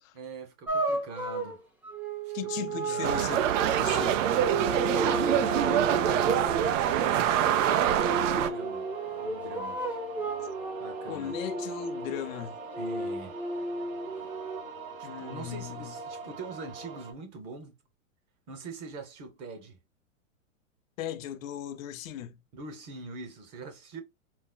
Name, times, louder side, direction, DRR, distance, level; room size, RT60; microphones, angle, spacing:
voice 1, 0.0-1.6 2.2-3.3 4.9-6.8 7.3-9.8 10.8-11.3 12.8-13.4 15.0-17.7 18.5-19.8 22.5-24.0, right 3 dB, 35° right, 1.0 m, -42 dB
sound 1, 0.7-6.7 7.9-12.2 12.7-14.6, right 1 dB, 5° right, 0.3 m, -34 dB
voice 2, 2.3-4.2 11.1-12.6 15.0-16.0 21.0-22.4, left 10 dB, 70° left, 0.7 m, -37 dB
sound 2, 3.0-8.5, right 10 dB, 65° right, 0.6 m, -25 dB
sound 3, 3.6-17.1, right 3 dB, 85° right, 1.3 m, -41 dB
4.2 x 2.0 x 2.2 m
hypercardioid pair, 130°, 41 cm